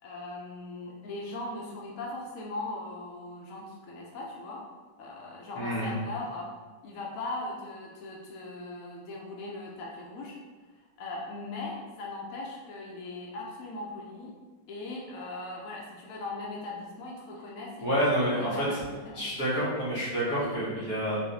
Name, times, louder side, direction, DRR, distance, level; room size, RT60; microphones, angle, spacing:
voice 1, 0.0-4.6 5.0-6.5 6.8-10.4 11.0-14.3 14.7-19.2, left 2 dB, 75° left, -2 dB, 0.7 m, -39 dB
voice 2, 5.5-5.9 17.8-18.6 19.1-21.2, equal, 50° left, -8 dB, 1.6 m, -28 dB
4.8 x 2.5 x 2.6 m, 1.3 s
omnidirectional pair, 2.0 m